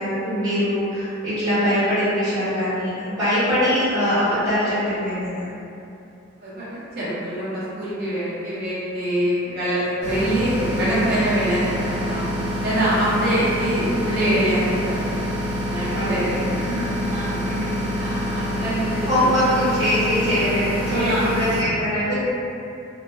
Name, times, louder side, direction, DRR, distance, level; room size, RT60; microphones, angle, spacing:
voice 1, 0.0-5.5 13.1-13.3 15.9-16.3 16.6-17.8 19.1-22.1, equal, 20° right, -16 dB, 1.4 m, -23 dB
voice 2, 6.4-12.2 12.6-15.2 15.6-16.4 17.0-17.4 18.0-19.1 20.9-21.2 22.1-22.2, right 1 dB, 55° right, -11 dB, 0.7 m, -24 dB
sound 1, 10.0-21.6, equal, 90° right, 0.8 m, -26 dB
2.7 x 2.2 x 2.3 m, 2.7 s
head